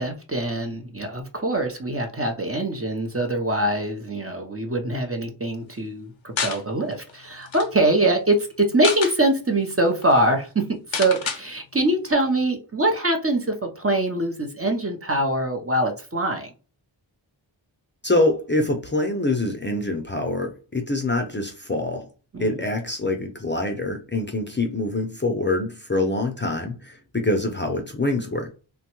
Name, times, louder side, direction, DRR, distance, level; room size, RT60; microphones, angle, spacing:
voice 1, 0.0-16.5 22.3-22.6, right 1 dB, 30° right, 0.6 m, -23 dB
sound 1, 6.4-6.6 7.1-7.2 7.4-7.7 8.6-9.2 9.7-9.8 10.0-10.2 10.9-11.4, left 5 dB, 75° left, 0.6 m, -28 dB
voice 2, 18.0-22.1 22.4-28.5, left 2 dB, 25° left, 0.5 m, -25 dB
3.0 x 2.2 x 2.9 m
wide cardioid pair, 45°, 47 cm